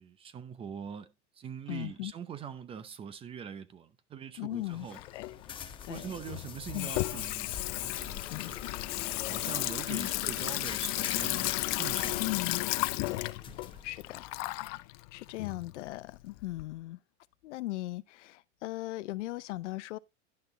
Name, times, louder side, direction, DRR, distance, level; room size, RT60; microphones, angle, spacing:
voice 1, 0.0-5.0 5.9-8.6 9.3-12.3 13.5-13.8, right 8 dB, 15° right, 0.7 m, -43 dB
voice 2, 1.7-2.1 4.4-4.9 5.1-5.3 5.8-6.1 6.7-6.9 8.3-8.7 9.9-10.1 12.2-12.6 13.1-13.4 13.8-14.2 14.5-14.8 15.1-17.0 17.4-20.0, left 17 dB, 85° left, 0.7 m, -38 dB
sound 1, 4.5-14.5, left 7 dB, 15° left, 0.8 m, -46 dB
Water tap faucet / Sink (filling or washing), 4.9-16.6, left 21 dB, 35° left, 0.4 m, -34 dB
11.0 x 6.0 x 4.0 m
supercardioid pair, 160°, 35 cm